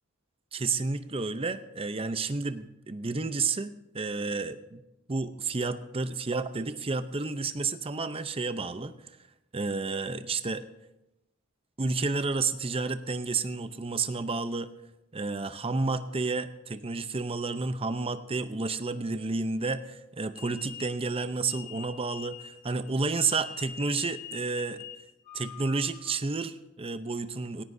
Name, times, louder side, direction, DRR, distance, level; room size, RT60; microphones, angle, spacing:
voice 1, 0.5-4.8 5.1-8.9 9.5-10.6 11.8-14.7 15.1-24.8 25.3-27.6, right 4 dB, 25° right, 11 dB, 0.6 m, -31 dB
sound 1, 20.3-26.3, left 8 dB, 30° left, 1.5 m, -45 dB
18.5 x 17.5 x 2.7 m, 0.97 s
head